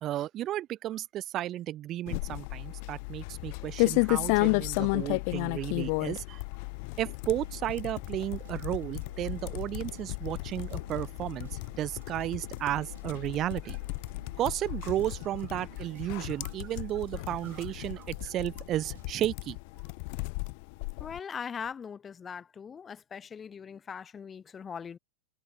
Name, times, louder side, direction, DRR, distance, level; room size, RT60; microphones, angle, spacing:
voice 1, 0.0-6.4 7.0-13.8 14.4-19.6, right 13 dB, 30° right, 0.7 m, -33 dB
sound 1, 2.1-21.2, left 34 dB, 45° left, 0.3 m, -33 dB
sound 2, 7.3-19.5, right 11 dB, 60° right, 3.2 m, -55 dB
voice 2, 21.0-25.0, left 6 dB, 20° left, 0.8 m, -40 dB
figure-of-eight pair, 90°, 0 cm